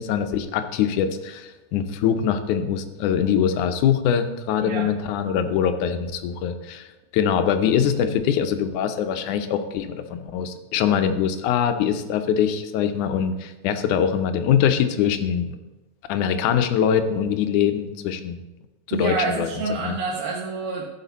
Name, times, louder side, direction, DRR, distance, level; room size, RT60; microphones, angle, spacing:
voice 1, 0.0-15.6 16.1-18.4 18.9-19.5 19.8-20.0, left 8 dB, 85° left, 8 dB, 2.2 m, -23 dB
voice 2, 18.9-20.9, right 4 dB, 60° right, -2 dB, 1.8 m, -27 dB
15.5 x 6.7 x 4.0 m, 1.1 s
omnidirectional pair, 3.4 m